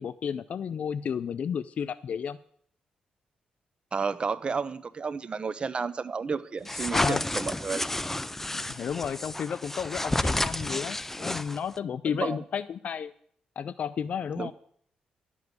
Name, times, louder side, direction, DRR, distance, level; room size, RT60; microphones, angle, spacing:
voice 1, 0.0-2.4 6.9-7.2 8.5-13.1 13.6-14.5, left 7 dB, 60° left, 15 dB, 0.4 m, -32 dB
voice 2, 3.9-7.8 12.1-12.4 14.4-14.5, right 5 dB, 40° right, 15 dB, 0.9 m, -31 dB
sound 1, 6.6-11.8, left 1 dB, 10° left, 0.5 m, -31 dB
11.5 x 7.2 x 9.6 m, 0.63 s
cardioid pair, 90°, 3 cm